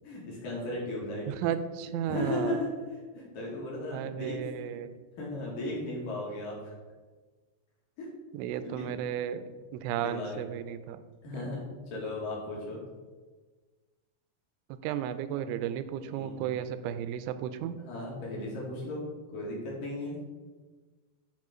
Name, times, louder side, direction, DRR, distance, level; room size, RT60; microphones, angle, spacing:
voice 1, 0.0-1.3 2.1-2.7 3.1-4.4 5.2-6.7 8.0-8.1 8.8-8.9 10.0-10.4 11.2-11.7 11.9-12.8 16.0-16.4 17.8-19.0 19.3-20.2, left 2 dB, 60° left, -4 dB, 2.6 m, -36 dB
voice 2, 1.3-2.7 3.9-5.0 8.3-11.0 14.8-17.8, right 10 dB, 85° right, 12 dB, 2.9 m, -34 dB
9.9 x 3.6 x 4.9 m, 1.4 s
omnidirectional pair, 5.5 m